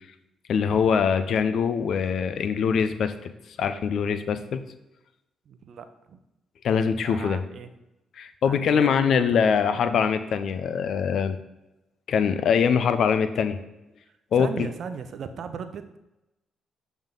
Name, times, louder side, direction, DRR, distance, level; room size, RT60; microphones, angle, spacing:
voice 1, 0.5-3.3 3.6-4.6 6.6-7.4 8.2-11.4 12.1-13.6 14.3-14.5, left 6 dB, 70° left, 10 dB, 0.5 m, -23 dB
voice 2, 5.5-6.2 7.0-7.7 8.4-9.4 14.4-15.8, right 6 dB, 65° right, 9 dB, 0.5 m, -38 dB
7.0 x 3.6 x 3.8 m, 0.95 s
supercardioid pair, 55°, 0 cm